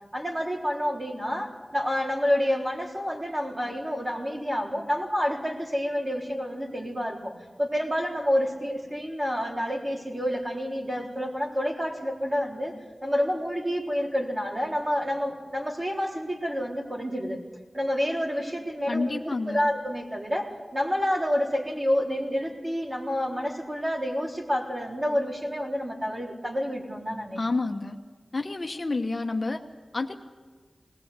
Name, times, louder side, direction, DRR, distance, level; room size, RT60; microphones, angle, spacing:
voice 1, 0.1-7.3 7.6-12.7 13.0-17.4 17.7-27.4, equal, 25° right, -1 dB, 3.9 m, -28 dB
voice 2, 18.9-19.7 27.4-28.0 28.3-29.6 29.9-30.2, left 3 dB, 45° left, 5 dB, 1.1 m, -29 dB
20.0 x 18.5 x 8.2 m, 1.4 s
wide cardioid pair, 80°, 0 cm